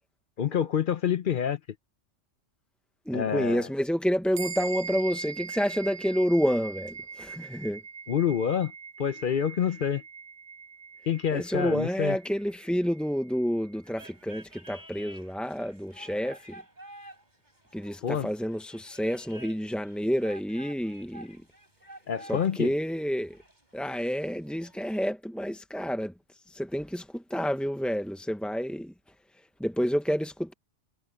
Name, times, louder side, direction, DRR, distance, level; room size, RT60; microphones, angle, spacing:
voice 1, 0.4-1.6 3.1-3.7 8.1-8.7 9.0-10.0 11.1-12.2 18.0-18.3 22.1-22.7, left 8 dB, 55° left, 0.7 m, -27 dB
voice 2, 3.1-7.8 11.3-16.6 17.7-21.4 22.2-23.4 23.7-26.1 26.5-28.9 29.6-30.5, equal, ahead, 0.4 m, -29 dB
sound 1, 4.3-14.1, right 5 dB, 65° right, 1.1 m, -42 dB
sound 2, 13.8-25.0, right 1 dB, 40° right, 7.8 m, -51 dB
omnidirectional pair, 1.2 m